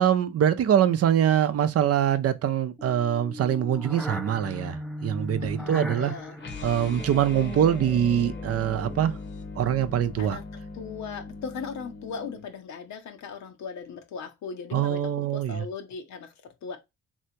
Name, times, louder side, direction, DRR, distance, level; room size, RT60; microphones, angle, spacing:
voice 1, 0.0-6.1 6.6-9.1 9.6-10.4 14.7-15.6, right 10 dB, 55° right, 0.5 m, -24 dB
sound 1, 2.8-9.2, equal, ahead, 0.5 m, -38 dB
voice 2, 5.4-6.4 10.2-16.8, left 6 dB, 65° left, 0.8 m, -38 dB
sound 2, 6.4-12.5, left 3 dB, 40° left, 0.8 m, -39 dB
3.3 x 2.8 x 2.7 m
cardioid pair, 90°, 30 cm